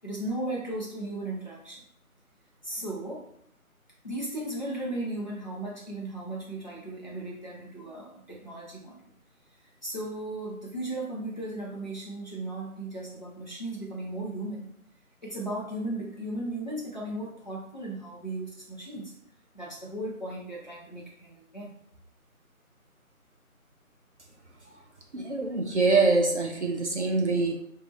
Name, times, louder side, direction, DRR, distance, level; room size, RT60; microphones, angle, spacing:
voice 1, 0.0-1.8 2.6-3.3 4.0-9.0 9.8-14.7 15.2-19.1 19.5-21.7, right 1 dB, 30° left, -5 dB, 0.7 m, -36 dB
voice 2, 25.1-27.6, right 3 dB, 55° right, 2 dB, 0.5 m, -24 dB
2.8 x 2.4 x 3.9 m, 0.69 s
figure-of-eight pair, 170°, 44 cm